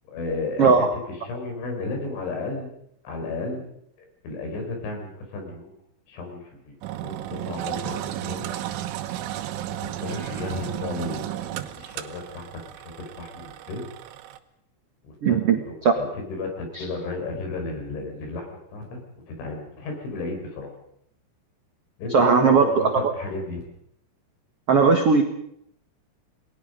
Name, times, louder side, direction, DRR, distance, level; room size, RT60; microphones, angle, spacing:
voice 1, 0.1-2.7 3.0-3.7 4.0-5.8 6.1-6.8 7.0-8.5 9.7-13.8 15.0-20.7 22.0-23.6, left 3 dB, 80° left, 3 dB, 7.7 m, -33 dB
Engine, 6.8-14.4, right 13 dB, 90° right, 3.7 m, -33 dB
sound 1, 10.1-11.2, left 1 dB, 30° left, 8.9 m, -44 dB
voice 2, 15.2-15.9 16.7-16.8 22.1-23.1 24.7-25.2, right 5 dB, 65° right, 4 dB, 1.4 m, -18 dB
30.0 x 20.0 x 5.3 m, 0.73 s
omnidirectional pair, 5.4 m